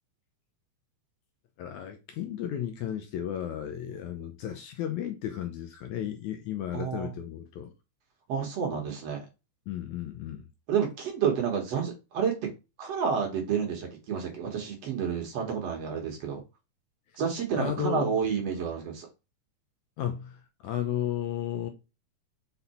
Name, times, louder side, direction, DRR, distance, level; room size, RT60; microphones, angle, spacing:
voice 1, 1.6-7.7 9.7-10.5 17.6-18.1 20.0-21.7, left 10 dB, 75° left, 1.9 m, -34 dB
voice 2, 6.7-7.1 8.3-9.3 10.7-12.3 12.8-16.4 17.1-19.1, right 7 dB, 60° right, 2.0 m, -30 dB
5.5 x 4.2 x 4.2 m
omnidirectional pair, 3.8 m